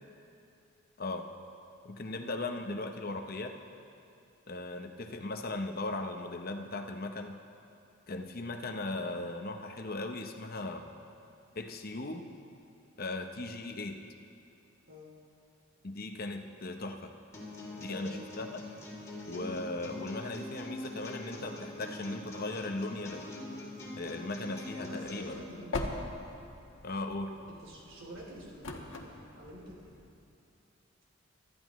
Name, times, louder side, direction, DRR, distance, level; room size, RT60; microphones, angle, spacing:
voice 1, 1.8-3.5 4.5-7.4 8.1-10.8 11.5-12.3 13.0-14.0 15.8-17.1 17.8-18.6 19.3-23.3 24.0-25.4 26.8-27.4, left 2 dB, 50° left, 5 dB, 0.8 m, -38 dB
sound 1, 17.3-25.3, left 1 dB, 15° left, 3.2 m, -43 dB
voice 2, 17.7-18.3 24.8-26.1 27.5-30.0, equal, 70° right, -3 dB, 3.1 m, -48 dB
sound 2, 25.0-30.1, left 2 dB, 75° left, 1.5 m, -42 dB
24.0 x 13.0 x 3.1 m, 2.6 s
head